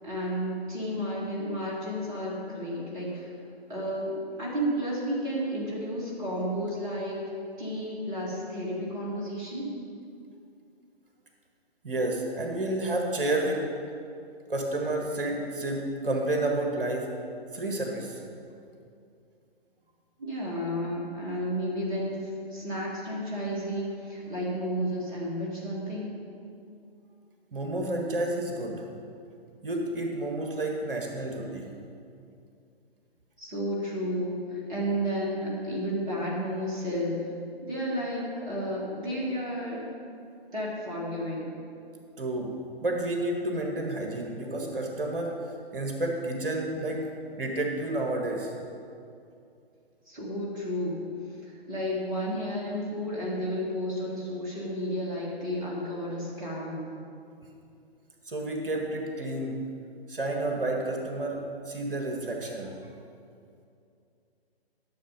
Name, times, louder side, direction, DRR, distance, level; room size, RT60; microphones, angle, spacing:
voice 1, 0.0-3.3 3.7-7.2 7.6-9.7 20.2-26.2 33.4-37.2 37.6-39.9 40.5-41.5 50.1-51.0 51.4-56.9, equal, 15° right, -6 dB, 1.7 m, -32 dB
voice 2, 11.8-13.7 14.5-17.1 17.5-18.2 27.5-28.9 29.6-31.7 42.2-47.1 47.4-48.5 58.3-59.5 60.1-62.7, right 1 dB, 60° right, 1 dB, 1.6 m, -30 dB
11.5 x 6.7 x 5.2 m, 2.5 s
figure-of-eight pair, 135°, 31 cm